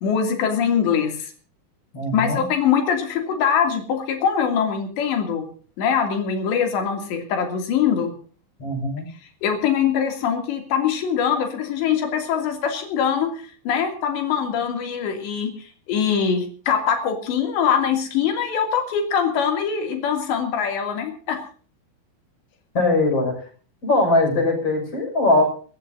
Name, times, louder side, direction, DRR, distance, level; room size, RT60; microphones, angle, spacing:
voice 1, 0.0-1.3 2.1-5.4 5.8-8.1 9.4-21.4, left 7 dB, 85° left, 5 dB, 5.0 m, -23 dB
voice 2, 1.9-2.4 8.6-9.1 22.7-23.4 23.8-25.4, left 2 dB, 35° left, 3 dB, 6.9 m, -20 dB
27.0 x 14.0 x 2.7 m, 0.42 s
omnidirectional pair, 4.9 m